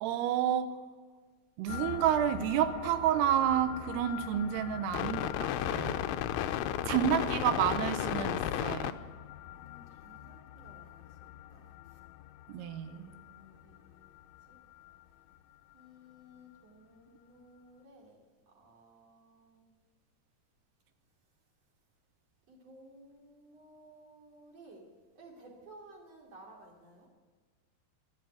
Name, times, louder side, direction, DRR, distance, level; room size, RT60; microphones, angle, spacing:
voice 1, 0.0-0.8 1.6-6.1 6.9-9.0 12.5-13.1, right 10 dB, 85° right, 11 dB, 2.8 m, -30 dB
sound 1, 1.7-13.4 13.7-13.8 14.0-14.4 14.7-14.9, left 11 dB, 90° left, 2.7 m, -37 dB
voice 2, 6.5-7.1 9.5-12.0 12.7-14.1 14.5-14.6 15.7-19.7 22.5-24.9 25.2-27.1, right 1 dB, 45° right, 0 dB, 3.4 m, -56 dB
13.0 x 12.0 x 8.1 m, 1.5 s
omnidirectional pair, 4.7 m